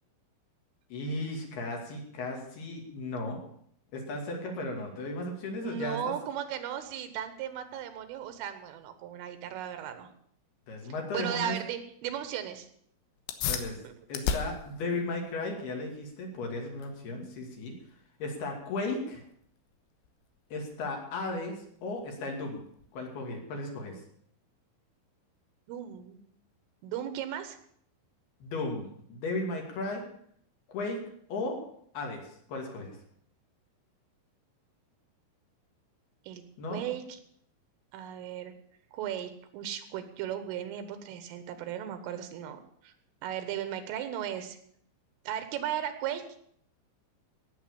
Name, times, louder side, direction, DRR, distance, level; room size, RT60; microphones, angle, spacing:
voice 1, 0.9-3.4 3.9-6.1 10.7-11.6 13.5-13.8 14.1-17.7 18.2-19.2 20.5-22.6 22.9-24.0 28.4-30.0 30.7-31.0 31.3-31.6 31.9-32.2 32.5-33.0 36.6-36.9, left 2 dB, 55° left, 1 dB, 4.2 m, -35 dB
voice 2, 5.6-10.1 11.1-12.7 13.9-14.1 25.7-26.2 26.8-27.6 36.3-36.4 36.7-37.2 37.9-38.5 38.9-42.9 43.2-44.6 45.3-46.3, right 10 dB, 85° right, 10 dB, 3.9 m, -36 dB
sound 1, 13.2-23.2, left 7 dB, 75° left, 3.3 m, -40 dB
17.0 x 7.5 x 8.6 m, 0.66 s
omnidirectional pair, 5.7 m